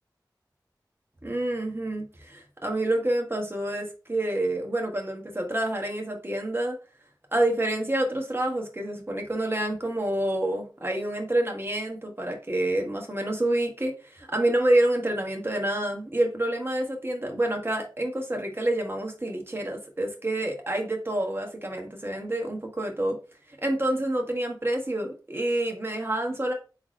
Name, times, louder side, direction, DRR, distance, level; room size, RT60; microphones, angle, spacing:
voice 1, 1.2-6.8 7.3-23.2 23.6-26.5, right 1 dB, 30° right, 2 dB, 1.5 m, -28 dB
3.9 x 3.5 x 3.7 m, 0.34 s
wide cardioid pair, 45°, 8 cm